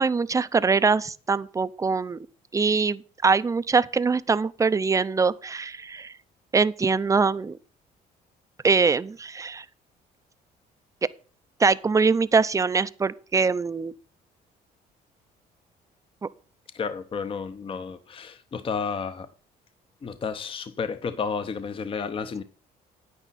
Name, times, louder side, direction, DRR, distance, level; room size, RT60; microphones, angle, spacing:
voice 1, 0.0-2.2 2.5-6.1 6.5-7.6 8.6-9.6 11.6-13.9, right 4 dB, 20° right, 0.5 m, -23 dB
voice 2, 16.7-19.3 20.0-22.4, left 5 dB, 30° left, 0.8 m, -31 dB
9.9 x 9.1 x 4.1 m
cardioid pair, 110°, 17 cm